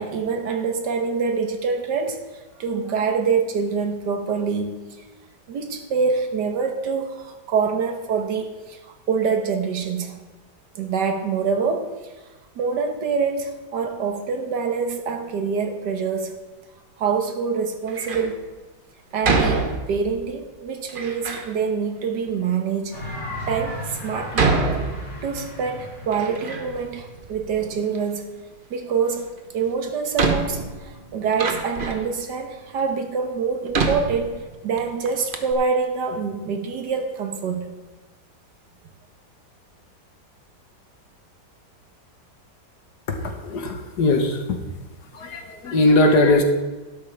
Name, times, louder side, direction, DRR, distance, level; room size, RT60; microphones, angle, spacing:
voice 1, 0.0-2.2 2.6-4.8 5.5-10.1 10.7-11.9 12.6-16.3 17.0-18.4 19.1-23.0 23.5-24.6 25.2-28.4 28.7-37.7, right 5 dB, 70° right, 5 dB, 1.7 m, -25 dB
Door, 17.9-18.4 19.2-20.2 20.9-21.5 22.3-22.4 23.1-23.2 24.3-25.5 25.8-26.9 27.2-28.0 29.4-29.5 30.2-32.1 32.8-32.9 33.7-34.8 35.1-35.2 35.3-35.5, right 3 dB, 40° right, 0.8 m, -25 dB
sound 1, 22.9-27.8, left 1 dB, 40° left, 4.0 m, -35 dB
voice 2, 43.1-44.6 45.1-46.4, left 2 dB, 65° left, 4 dB, 1.8 m, -20 dB
12.5 x 11.5 x 3.4 m, 1.2 s
omnidirectional pair, 1.9 m